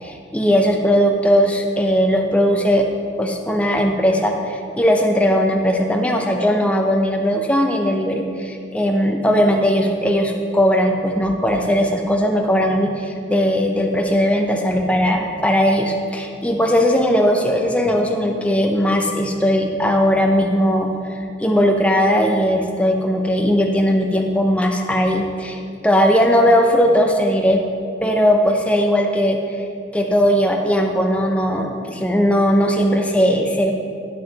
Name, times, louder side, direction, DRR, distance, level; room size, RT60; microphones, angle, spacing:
voice 1, 0.0-2.9 3.2-20.9 21.4-25.6 25.8-27.6 28.0-29.4 29.9-33.7, equal, 5° left, 2 dB, 0.5 m, -18 dB
9.3 x 5.4 x 4.0 m, 2.4 s
head